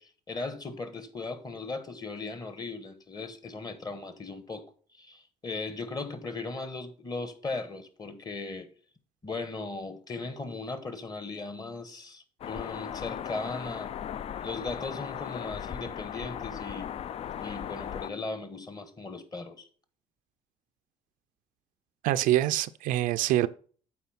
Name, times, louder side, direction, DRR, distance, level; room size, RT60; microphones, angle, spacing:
voice 1, 0.0-4.6 4.9-8.7 9.2-13.9 14.4-16.9 17.4-19.7, left 3 dB, 30° left, 1.3 m, -38 dB
sound 1, 12.4-18.1, left 9 dB, 50° left, 0.4 m, -37 dB
voice 2, 22.0-23.5, right 14 dB, 80° right, 0.4 m, -25 dB
8.4 x 4.3 x 5.5 m
cardioid pair, 85°, 14 cm